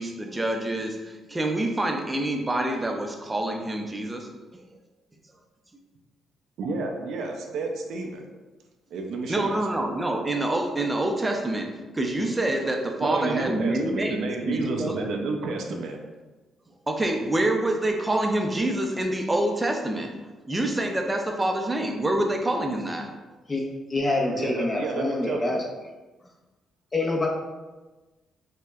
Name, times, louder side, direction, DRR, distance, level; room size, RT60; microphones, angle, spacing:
voice 1, 0.0-4.3 4.5-4.6 9.3-15.1 16.9-23.1, right 1 dB, 15° right, 3 dB, 0.5 m, -27 dB
voice 2, 6.6-8.2 8.9-9.6 10.0-10.1 13.0-16.0 24.3-25.6, right 3 dB, 75° right, 3 dB, 0.4 m, -30 dB
voice 3, 23.9-25.6 26.9-27.3, left 2 dB, 30° left, -1 dB, 0.6 m, -26 dB
4.4 x 2.1 x 2.3 m, 1.2 s
cardioid pair, 90°, 0 cm